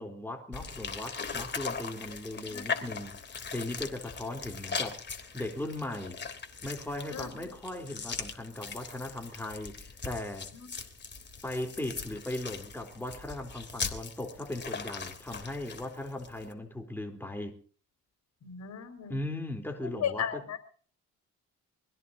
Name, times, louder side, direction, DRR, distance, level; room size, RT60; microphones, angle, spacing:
voice 1, 0.0-5.0 5.3-6.2 6.6-10.5 11.4-17.6 19.1-20.4, left 1 dB, 5° left, 3.7 m, -38 dB
sound 1, 0.5-16.5, left 5 dB, 35° left, 3.3 m, -40 dB
voice 2, 2.5-3.0 7.1-7.5 10.5-10.7 18.4-19.2 20.0-20.6, left 8 dB, 65° left, 5.1 m, -36 dB
25.0 x 16.5 x 2.8 m
cardioid pair, 90°, 30 cm